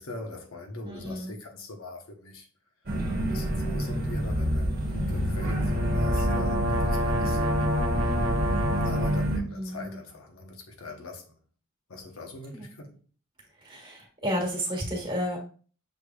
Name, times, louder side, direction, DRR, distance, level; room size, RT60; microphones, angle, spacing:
voice 1, 0.0-2.5 3.2-7.6 8.8-11.2 11.9-13.0, left 1 dB, 75° left, 0.9 m, -40 dB
voice 2, 0.8-1.4 4.8-5.4 9.4-10.0 12.5-12.7 13.6-15.4, equal, 25° right, 1.6 m, -33 dB
sound 1, 2.9-9.4, equal, 45° right, 1.1 m, -27 dB
sound 2, 5.4-9.3, equal, 65° right, 0.7 m, -30 dB
6.6 x 3.2 x 2.3 m
head